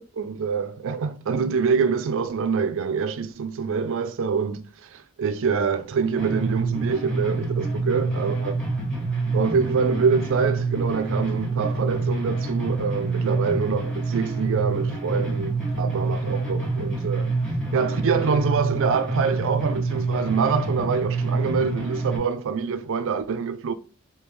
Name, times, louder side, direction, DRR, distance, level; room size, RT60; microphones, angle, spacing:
voice 1, 0.2-8.5 9.3-17.3 17.7-23.7, right 5 dB, 60° right, 0.4 m, -25 dB
sound 1, 6.2-22.2, right 3 dB, 5° left, 0.9 m, -27 dB
3.2 x 2.7 x 3.4 m
head